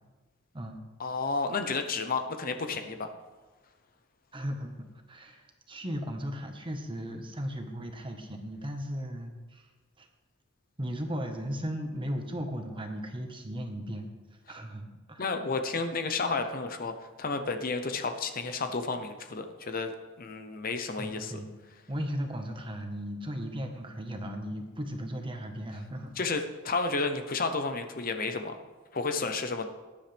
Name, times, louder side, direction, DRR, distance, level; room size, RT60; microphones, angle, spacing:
voice 1, 1.0-3.1 15.2-19.9 20.2-21.3 26.2-28.6 28.9-29.7, left 4 dB, 45° left, 7 dB, 0.8 m, -31 dB
voice 2, 4.3-9.7 10.0-10.1 10.8-14.0 14.5-15.3 21.0-21.5 21.9-26.4, equal, 25° right, 4 dB, 1.4 m, -36 dB
19.0 x 10.5 x 3.5 m, 1.3 s
head